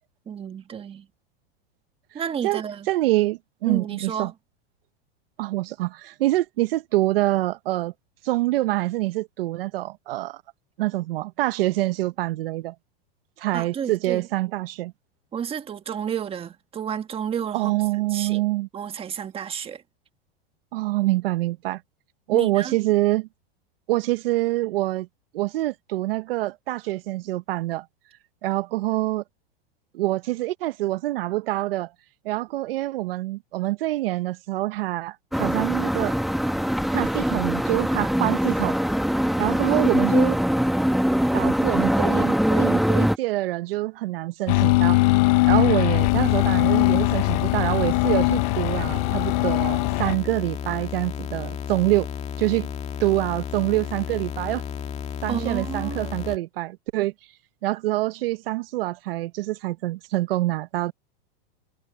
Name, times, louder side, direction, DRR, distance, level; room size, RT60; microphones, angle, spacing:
voice 1, 0.3-1.1 2.1-2.9 3.7-4.3 13.5-14.2 15.3-17.8 18.1-18.4 18.7-19.8 22.3-22.7 55.3-56.2, right 8 dB, 20° right, 1.5 m, -31 dB
voice 2, 2.9-4.3 5.4-7.9 8.2-10.4 10.8-12.7 13.4-14.9 17.5-18.7 20.7-21.8 22.3-23.3 23.9-25.1 25.3-27.9 28.4-29.2 29.9-31.9 32.2-36.2 36.9-38.8 39.4-40.4 41.3-45.0 45.4-52.1 52.4-52.7 53.0-54.6 55.2-57.1 57.6-60.9, right 17 dB, 70° right, 1.0 m, -25 dB
sound 1, 35.3-43.2, equal, ahead, 1.3 m, -22 dB
sound 2, 44.5-50.2, left 23 dB, 40° left, 0.4 m, -21 dB
sound 3, 46.0-56.4, left 8 dB, 20° left, 2.3 m, -33 dB
supercardioid pair, 140°, 30 cm